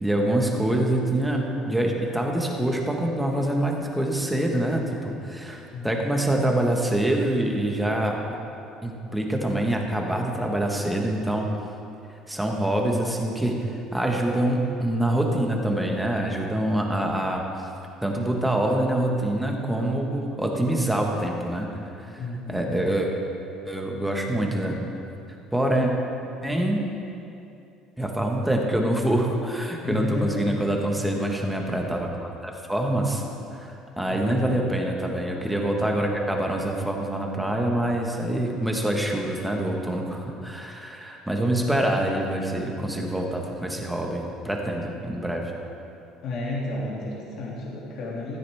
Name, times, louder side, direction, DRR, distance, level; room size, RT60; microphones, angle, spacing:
voice 1, 0.0-8.2 8.8-11.5 12.3-17.4 18.0-21.7 22.0-22.1 22.5-23.1 23.7-24.9 25.5-25.9 26.4-26.9 28.0-33.2 33.5-45.6, right 1 dB, 5° right, 0 dB, 1.3 m, -25 dB
voice 2, 5.7-6.3 22.2-22.7 29.8-30.6 34.1-34.4 46.2-48.4, left 2 dB, 50° left, -5 dB, 2.4 m, -32 dB
14.5 x 13.0 x 3.5 m, 2.7 s
cardioid pair, 150°, 0 cm